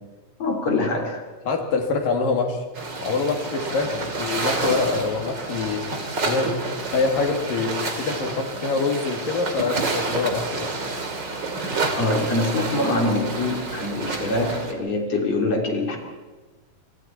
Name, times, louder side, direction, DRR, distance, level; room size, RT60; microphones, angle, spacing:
voice 1, 0.4-1.2 3.9-4.0 12.0-16.0, left 2 dB, 50° left, 2 dB, 4.1 m, -24 dB
voice 2, 1.5-2.6 3.0-3.9 4.2-5.8 6.2-6.6 6.9-10.7, left 4 dB, 75° left, 3 dB, 4.3 m, -25 dB
sound 1, 2.7-14.7, right 3 dB, 35° right, 2.8 m, -29 dB
28.0 x 24.0 x 4.5 m, 1.3 s
omnidirectional pair, 4.0 m